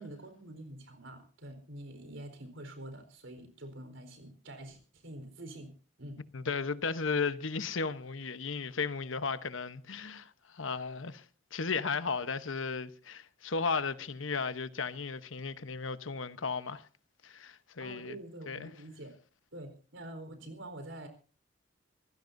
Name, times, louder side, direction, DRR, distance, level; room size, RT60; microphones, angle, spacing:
voice 1, 0.0-6.2 17.8-19.1 19.5-21.1, right 1 dB, 85° right, 4.2 m, -46 dB
voice 2, 6.3-11.2 11.5-16.9 17.2-18.1 18.5-18.7, left 4 dB, 85° left, 1.0 m, -35 dB
26.5 x 16.0 x 2.7 m
head